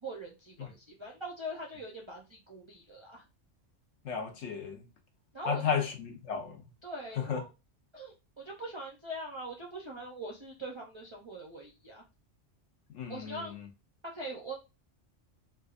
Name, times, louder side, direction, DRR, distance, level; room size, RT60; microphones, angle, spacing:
voice 1, 0.0-3.2 5.3-5.7 6.8-7.5 7.9-12.0 13.1-13.5 14.0-14.5, right 1 dB, 40° right, 0.4 m, -42 dB
voice 2, 4.0-4.8 5.5-6.6 7.3-7.4 12.9-13.3, left 6 dB, 75° left, 1.0 m, -33 dB
3.5 x 2.5 x 2.4 m
omnidirectional pair, 1.2 m